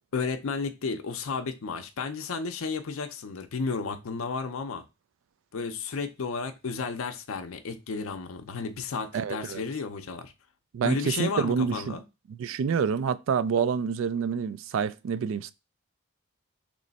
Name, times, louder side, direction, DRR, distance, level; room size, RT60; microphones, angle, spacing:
voice 1, 0.1-4.8 5.5-10.3 10.8-12.0, left 4 dB, 80° left, 0.5 m, -33 dB
voice 2, 9.1-9.6 10.7-12.0 12.3-15.5, right 6 dB, 70° right, 0.3 m, -27 dB
3.2 x 3.1 x 3.9 m
head